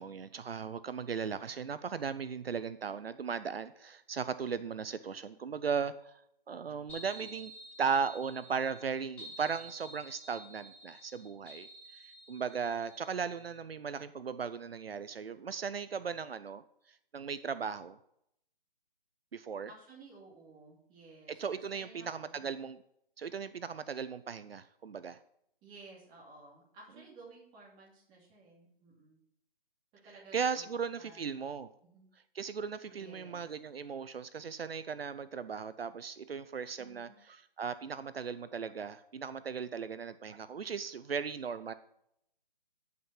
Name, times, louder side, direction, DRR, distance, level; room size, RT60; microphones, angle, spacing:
voice 1, 0.0-6.2 6.5-7.5 7.8-16.6 17.1-18.0 19.3-19.7 21.4-22.8 23.2-25.2 30.3-31.7 32.3-37.1 37.6-41.7, right 6 dB, 80° right, 14 dB, 0.7 m, -37 dB
sound 1, 6.9-13.5, right 1 dB, 5° left, 4.6 m, -51 dB
voice 2, 19.7-22.5 25.6-29.2 30.0-31.3 31.8-32.1 32.8-33.5 36.8-37.2, right 3 dB, 15° right, -3 dB, 2.7 m, -55 dB
12.5 x 5.8 x 5.7 m, 0.74 s
figure-of-eight pair, 150°, 29 cm